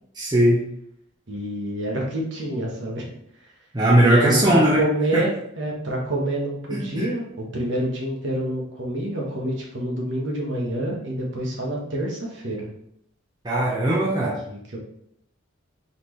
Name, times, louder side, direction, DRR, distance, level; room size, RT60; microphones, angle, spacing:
voice 1, 0.1-0.6 3.7-4.8 5.1-5.2 6.7-7.1 13.4-14.4, right 1 dB, 20° right, -5 dB, 0.7 m, -19 dB
voice 2, 1.3-3.2 4.0-12.7 14.5-14.8, right 1 dB, 60° right, -2 dB, 1.2 m, -27 dB
4.2 x 3.7 x 3.1 m, 0.73 s
head